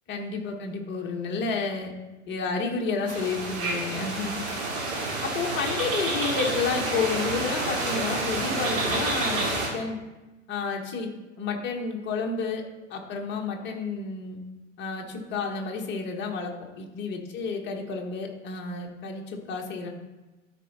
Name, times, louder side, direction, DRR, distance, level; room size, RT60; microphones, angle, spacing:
voice 1, 0.1-1.9 2.3-4.4 5.2-10.0 10.5-11.1 11.4-12.6 12.9-14.4 14.8-19.9, left 4 dB, 30° left, 2 dB, 1.4 m, -31 dB
sound 1, 3.1-9.7, right 2 dB, 35° right, 2.5 m, -29 dB
12.5 x 4.5 x 4.1 m, 1.1 s
figure-of-eight pair, 95°, 38 cm